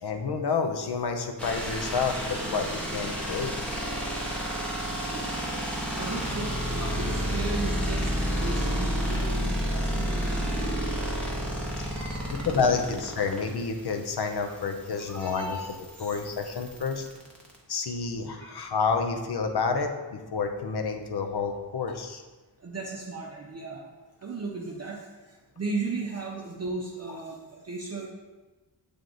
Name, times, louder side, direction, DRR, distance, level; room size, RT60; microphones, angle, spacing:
voice 1, 0.0-3.5 12.3-15.6 16.0-17.1 17.7-22.2, left 5 dB, 65° left, 5 dB, 0.7 m, -29 dB
sound 1, 1.4-17.6, equal, 5° left, 0.9 m, -31 dB
voice 2, 5.0-11.1 11.8-12.5 14.5-14.6 15.0-15.7 16.0-16.2 18.4-18.5 22.6-23.9 24.2-28.1, right 3 dB, 40° right, -1 dB, 0.5 m, -36 dB
7.5 x 3.4 x 3.8 m, 1.2 s
wide cardioid pair, 155°, 42 cm